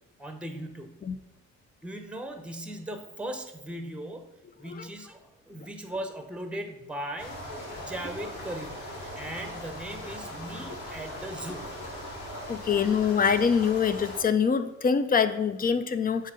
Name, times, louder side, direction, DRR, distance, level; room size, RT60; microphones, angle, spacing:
voice 1, 0.2-1.0 1.8-7.4 7.8-8.8 9.2-11.8, right 1 dB, 5° right, 6 dB, 0.8 m, -38 dB
sound 1, 7.2-14.2, left 1 dB, 70° left, 2.4 m, -39 dB
voice 2, 12.5-16.3, left 6 dB, 30° left, 11 dB, 0.5 m, -24 dB
7.4 x 2.8 x 5.0 m, 0.92 s
cardioid pair, 90°, 30 cm